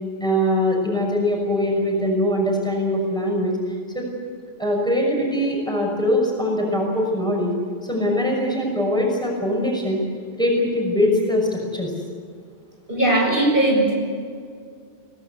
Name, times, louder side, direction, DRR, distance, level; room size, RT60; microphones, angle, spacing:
voice 1, 0.2-3.5 3.9-4.0 4.6-7.5 7.8-10.0 10.4-11.9, left 1 dB, 5° left, -1 dB, 6.0 m, -22 dB
voice 2, 12.9-13.9, right 1 dB, 55° right, -1 dB, 7.2 m, -18 dB
25.0 x 18.0 x 8.3 m, 2.2 s
omnidirectional pair, 1.1 m